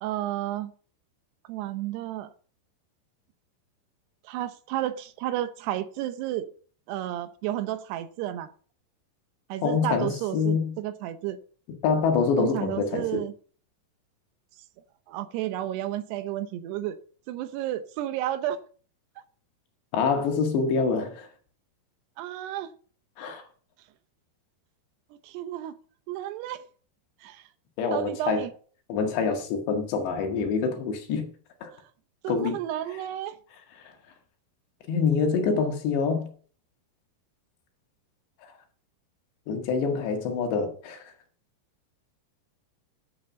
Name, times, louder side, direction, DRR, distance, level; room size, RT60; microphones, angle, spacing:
voice 1, 0.0-0.7 1.5-2.3 4.2-6.5 6.9-8.5 9.5-11.4 12.4-13.3 15.1-17.0 17.3-18.6 22.2-22.7 25.2-25.7 26.1-26.6 27.2-27.4 27.9-28.5 32.2-33.4, right 13 dB, 80° right, 2.8 m, -32 dB
voice 2, 9.6-10.8 11.8-13.2 19.9-21.3 23.2-23.4 27.8-28.5 28.9-31.3 31.6-31.7 32.3-32.6 33.8-33.9 34.9-36.3 38.4-38.5 39.5-41.1, left 5 dB, 80° left, 4.0 m, -26 dB
11.0 x 7.7 x 5.2 m
omnidirectional pair, 5.0 m